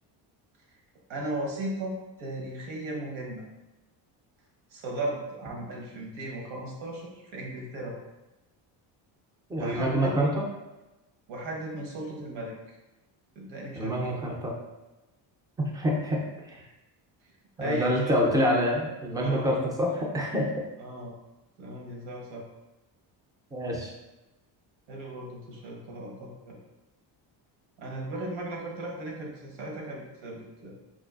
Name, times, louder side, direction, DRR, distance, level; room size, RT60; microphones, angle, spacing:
voice 1, 1.1-3.4 4.7-8.0 9.6-10.1 11.3-12.8 13.3-14.1 17.6-18.2 19.2-19.5 20.8-21.1 21.6-22.4 24.9-26.6 27.8-30.7, right 1 dB, 75° right, -1 dB, 1.1 m, -36 dB
voice 2, 9.5-10.4 13.8-14.5 15.6-16.7 17.6-20.5 23.5-23.9, equal, 10° right, -1 dB, 0.3 m, -27 dB
4.6 x 2.4 x 2.3 m, 1.0 s
cardioid pair, 135°, 47 cm